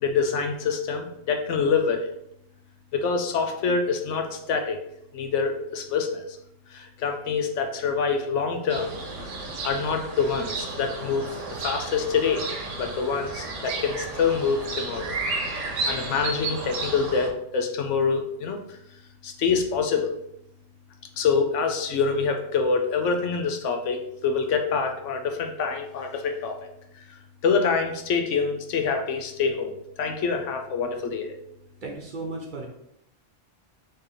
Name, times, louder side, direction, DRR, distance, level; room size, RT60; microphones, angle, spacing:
voice 1, 0.0-2.1 2.9-4.8 5.1-6.3 6.7-8.9 9.6-11.3 11.6-12.5 12.8-15.2 15.9-18.6 19.2-20.1 21.2-26.7 27.0-31.4, left 5 dB, 75° left, 5 dB, 1.0 m, -26 dB
sound 1, 8.7-17.3, right 3 dB, 70° right, 1.2 m, -33 dB
voice 2, 31.8-32.7, right 3 dB, 45° right, 0 dB, 0.8 m, -35 dB
4.3 x 3.4 x 3.6 m, 0.78 s
omnidirectional pair, 1.3 m